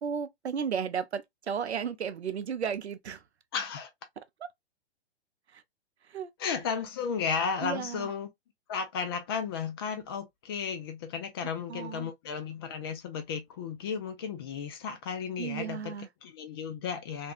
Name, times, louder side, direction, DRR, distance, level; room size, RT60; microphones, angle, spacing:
voice 1, 0.0-3.2 4.2-4.5 5.5-5.6 6.0-6.6 7.6-8.1 11.7-12.1 15.4-16.1, right 7 dB, 85° right, 0.5 m, -34 dB
voice 2, 3.5-3.9 6.4-8.3 8.7-15.9 16.2-17.3, left 6 dB, 25° left, 0.3 m, -34 dB
2.5 x 2.3 x 2.3 m
figure-of-eight pair, 120°, 32 cm